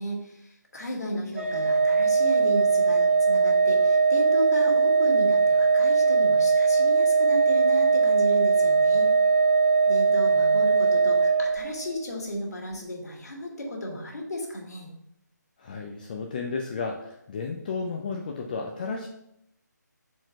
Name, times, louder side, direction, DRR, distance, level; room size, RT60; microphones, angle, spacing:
voice 1, 0.0-9.1 9.9-14.9, equal, 60° left, 0 dB, 2.0 m, -34 dB
Organ, 1.4-12.0, right 4 dB, 40° right, 0.6 m, -21 dB
voice 2, 15.6-19.1, left 4 dB, 25° left, 2 dB, 0.5 m, -33 dB
4.6 x 4.3 x 5.7 m, 0.78 s
figure-of-eight pair, 150°, 10 cm